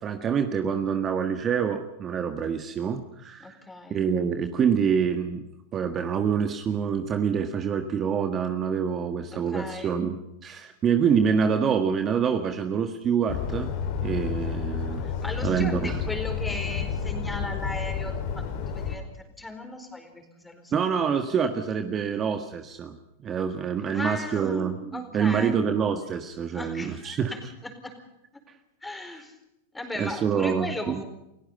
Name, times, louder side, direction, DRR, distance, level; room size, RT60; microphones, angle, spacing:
voice 1, 0.0-3.6 3.9-5.4 5.7-10.2 10.4-13.7 14.0-15.1 15.4-16.0 20.7-27.3 30.0-31.0, right 7 dB, 30° right, 7 dB, 1.7 m, -26 dB
voice 2, 3.4-4.0 9.3-10.0 15.0-19.1 19.4-21.1 23.9-25.7 26.5-28.0 28.8-29.4 29.7-31.0, left 2 dB, 10° left, 6 dB, 4.5 m, -37 dB
sound 1, 13.3-19.0, left 7 dB, 55° left, 4.7 m, -30 dB
29.5 x 17.0 x 5.6 m, 0.86 s
hypercardioid pair, 110°, 0 cm